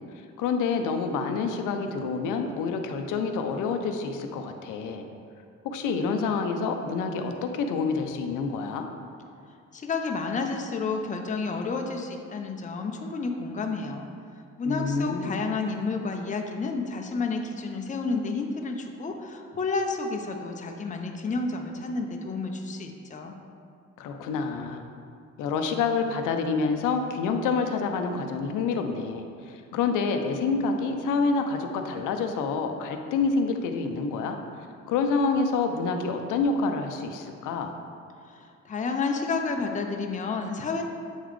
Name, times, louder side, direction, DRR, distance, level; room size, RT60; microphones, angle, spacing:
voice 1, 0.4-5.1 5.6-8.9 14.6-15.4 24.0-24.8 25.4-34.4 34.9-37.8, left 4 dB, 90° left, 5 dB, 0.6 m, -27 dB
voice 2, 9.7-14.1 14.6-23.3 38.3-40.8, left 4 dB, 25° left, 3 dB, 0.5 m, -30 dB
7.9 x 3.9 x 3.1 m, 2.4 s
cardioid pair, 90°, 30 cm